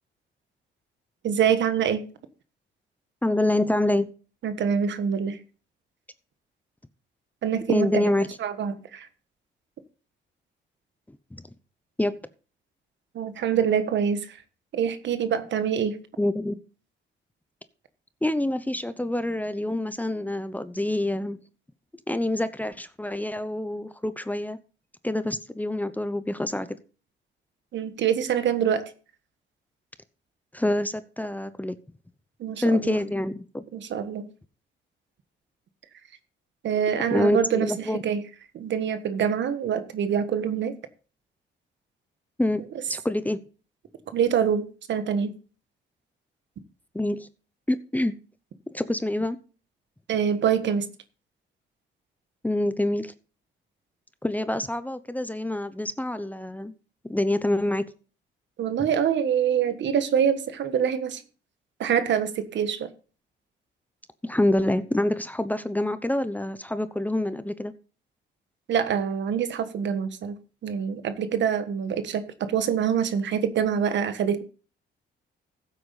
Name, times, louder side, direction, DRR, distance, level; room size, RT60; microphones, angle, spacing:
voice 1, 1.2-2.1 4.4-5.4 7.4-8.1 8.4-9.1 13.1-14.4 14.7-16.0 27.7-28.8 32.4-33.0 33.7-34.3 36.6-37.7 38.0-38.2 38.5-40.8 44.1-45.3 50.1-50.9 58.6-61.2 61.8-62.9 68.7-74.4, right 8 dB, 65° right, 1.4 m, -25 dB
voice 2, 3.2-4.1 7.7-8.3 11.3-11.4 12.0-12.1 16.2-16.6 18.2-21.4 22.1-24.6 25.0-26.8 30.5-31.8 32.6-33.6 37.1-38.0 42.4-42.6 42.9-43.4 46.9-47.3 47.7-48.1 48.7-49.4 52.4-53.1 54.2-56.7 57.1-57.9 64.2-67.7, left 1 dB, 10° left, 0.8 m, -26 dB
15.0 x 8.2 x 4.1 m
cardioid pair, 90°, 20 cm